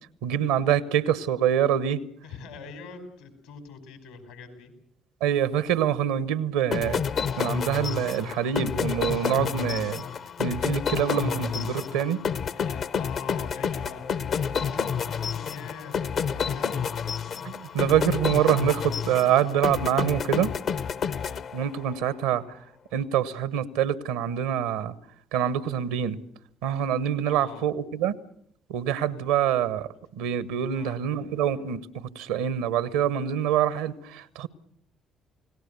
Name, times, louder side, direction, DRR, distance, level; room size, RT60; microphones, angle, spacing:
voice 1, 0.2-2.0 5.2-7.0 7.4-10.0 10.4-12.2 17.4-20.5 21.5-22.4 22.9-24.9 25.3-26.2 26.6-28.1 28.7-34.5, right 9 dB, 80° right, 18 dB, 1.0 m, -25 dB
voice 2, 2.2-4.7 12.5-16.9 21.3-21.5 27.2-27.6 29.1-29.3 30.7-31.0, left 6 dB, 80° left, 8 dB, 4.6 m, -43 dB
sound 1, 6.7-22.0, left 7 dB, 55° left, 0.9 m, -29 dB
29.5 x 18.0 x 6.9 m, 0.71 s
hypercardioid pair, 50°, 0 cm